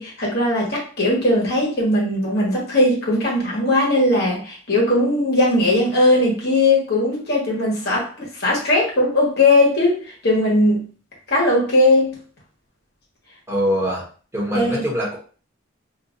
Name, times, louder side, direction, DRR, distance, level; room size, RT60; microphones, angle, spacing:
voice 1, 0.0-10.8 11.3-12.2 14.5-14.8, left 1 dB, 55° left, -3 dB, 1.3 m, -19 dB
voice 2, 13.5-14.0 14.3-15.2, equal, 15° right, -5 dB, 1.0 m, -22 dB
2.7 x 2.5 x 3.7 m, 0.39 s
head